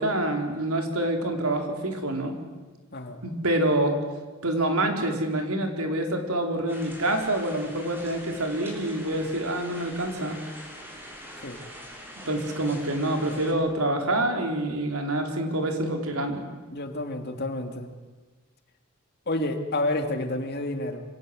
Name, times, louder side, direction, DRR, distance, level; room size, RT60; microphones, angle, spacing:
voice 1, 0.0-2.4 3.2-4.0 4.4-10.4 12.3-16.4 19.4-19.5, right 1 dB, 75° right, 4 dB, 4.4 m, -26 dB
sound 1, 6.7-13.5, equal, 10° right, 6.1 m, -44 dB
voice 2, 16.7-17.9 19.3-21.0, left 2 dB, 50° left, 6 dB, 2.6 m, -29 dB
27.0 x 26.5 x 7.9 m, 1.3 s
head